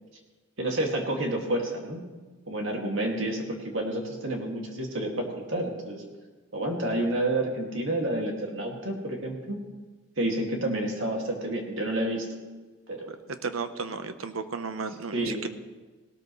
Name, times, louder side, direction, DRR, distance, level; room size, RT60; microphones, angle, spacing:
voice 1, 0.6-2.0 2.5-6.0 6.5-9.6 10.2-12.3 12.9-13.1 15.1-15.5, right 1 dB, 65° right, 1 dB, 2.2 m, -29 dB
voice 2, 13.1-15.5, right 4 dB, 90° right, 9 dB, 0.9 m, -34 dB
18.0 x 13.0 x 3.2 m, 1.3 s
head